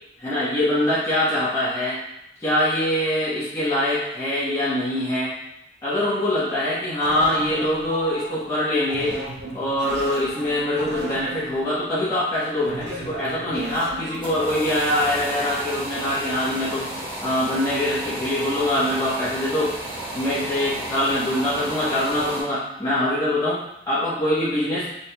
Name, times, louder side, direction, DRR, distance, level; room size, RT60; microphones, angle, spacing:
voice 1, 0.2-2.0 2.4-5.3 5.8-9.1 9.5-16.9 17.2-19.7 20.1-24.9, left 1 dB, 20° left, -12 dB, 1.2 m, -23 dB
sound 1, 7.0-14.5, right 2 dB, 70° right, 0.7 m, -36 dB
sound 2, 14.0-22.4, right 1 dB, 30° right, 1.1 m, -33 dB
4.3 x 3.4 x 2.3 m, 0.84 s
head